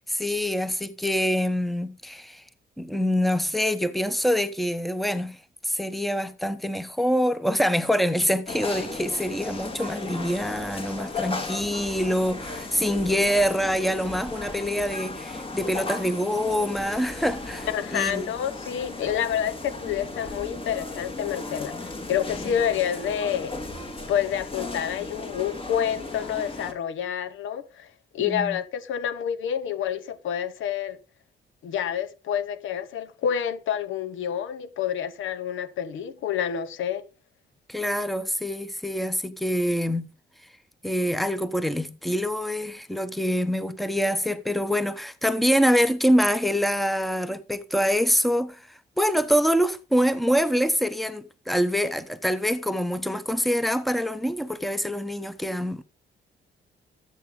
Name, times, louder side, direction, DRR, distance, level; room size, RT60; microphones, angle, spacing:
voice 1, 0.1-2.4 2.8-5.4 5.6-18.3 22.4-22.5 28.2-28.6 37.7-40.1 40.8-55.8, equal, ahead, 1.0 m, -25 dB
sound 1, 8.5-26.7, left 3 dB, 25° left, 2.3 m, -36 dB
voice 2, 17.7-23.6 24.1-27.9 28.1-31.0 31.6-37.0, left 9 dB, 80° left, 1.0 m, -28 dB
13.0 x 8.1 x 3.8 m
cardioid pair, 90°, 20 cm